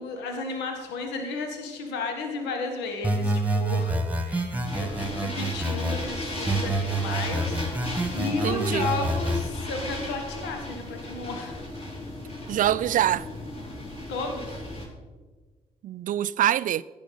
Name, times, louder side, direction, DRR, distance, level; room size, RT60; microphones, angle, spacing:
voice 1, 0.0-4.5 4.7-11.6 14.1-14.6, left 3 dB, 65° left, 1.4 m, -33 dB
sound 1, 3.0-6.0 6.5-9.5, right 2 dB, 10° right, 1.8 m, -27 dB
sound 2, 4.7-14.9, left 1 dB, 35° left, 3.9 m, -36 dB
voice 2, 8.4-8.9 12.5-13.3 15.8-16.8, right 12 dB, 45° right, 0.4 m, -24 dB
16.0 x 5.6 x 5.6 m
figure-of-eight pair, 40°, 19 cm